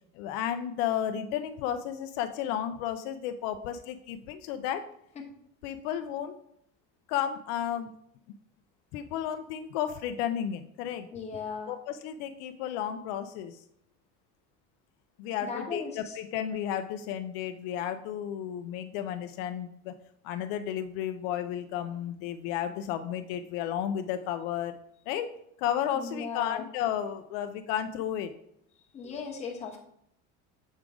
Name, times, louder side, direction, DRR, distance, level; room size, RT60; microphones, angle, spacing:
voice 1, 0.1-4.8 5.6-6.4 7.1-7.9 8.9-11.1 11.7-13.6 15.2-19.9 20.2-24.7 25.1-28.3, left 10 dB, 70° left, 8 dB, 0.5 m, -33 dB
voice 2, 11.1-11.7 15.4-16.2 25.9-26.7 28.9-29.8, left 5 dB, 20° left, -1 dB, 1.0 m, -37 dB
7.3 x 3.7 x 4.8 m, 0.72 s
cardioid pair, 170°, 31 cm